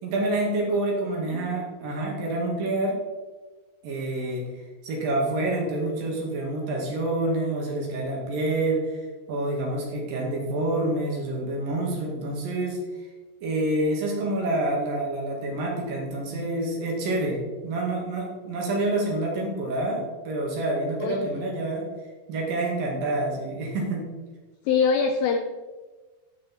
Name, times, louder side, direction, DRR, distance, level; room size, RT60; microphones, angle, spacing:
voice 1, 0.0-3.0 3.8-9.0 9.3-12.8 13.4-21.9 22.3-24.0, right 2 dB, 60° right, -1 dB, 3.3 m, -27 dB
voice 2, 0.7-1.4 21.0-21.4 24.7-25.4, left 5 dB, 85° left, 7 dB, 2.1 m, -25 dB
11.5 x 6.4 x 4.3 m, 1.3 s
omnidirectional pair, 4.8 m